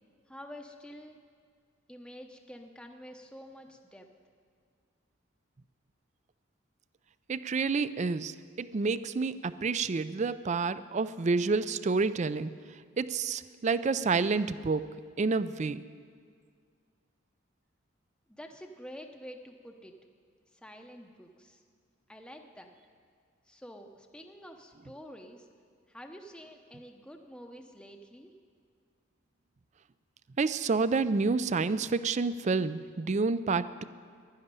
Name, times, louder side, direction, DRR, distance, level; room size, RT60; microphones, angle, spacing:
voice 1, 0.3-1.2 1.9-4.1 18.3-20.0 20.5-21.6 22.1-22.7 23.5-25.5 25.9-28.3, equal, 5° left, 3 dB, 0.7 m, -48 dB
voice 2, 7.3-12.5 13.0-14.9 15.2-15.8 30.4-33.8, right 4 dB, 35° right, 15 dB, 0.4 m, -29 dB
12.0 x 11.0 x 9.6 m, 2.1 s
head